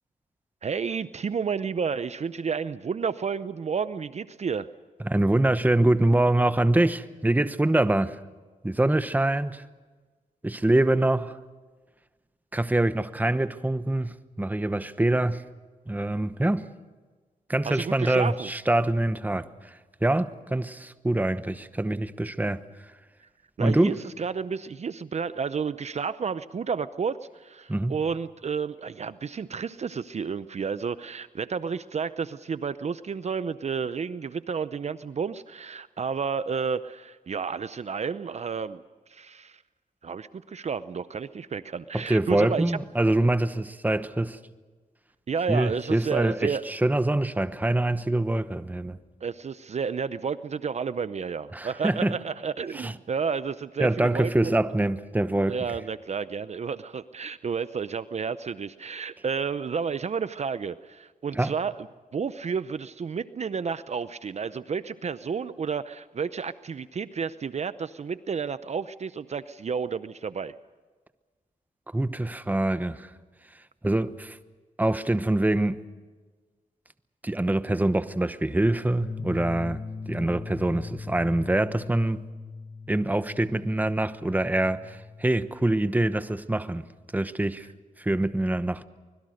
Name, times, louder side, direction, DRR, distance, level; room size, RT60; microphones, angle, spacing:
voice 1, 0.6-4.7 17.7-18.5 23.6-38.8 39.1-39.6 40.0-42.8 45.3-46.7 49.2-54.5 55.5-61.9 62.1-70.5, right 6 dB, 50° right, 0.7 m, -31 dB
voice 2, 5.0-8.2 8.6-9.6 10.4-11.4 12.5-15.4 15.9-16.6 17.5-22.6 23.6-23.9 27.7-28.0 41.9-44.4 45.5-49.0 51.5-52.1 52.7-52.9 53.8-55.6 61.3-61.5 71.9-73.1 73.8-74.4 74.8-75.8 77.2-82.2 82.9-86.8 87.1-87.7 88.0-88.8, right 1 dB, 10° right, 1.0 m, -25 dB
sound 1, 79.0-85.6, left 4 dB, 35° left, 1.1 m, -39 dB
25.0 x 21.5 x 6.5 m
cardioid pair, 85°, 14 cm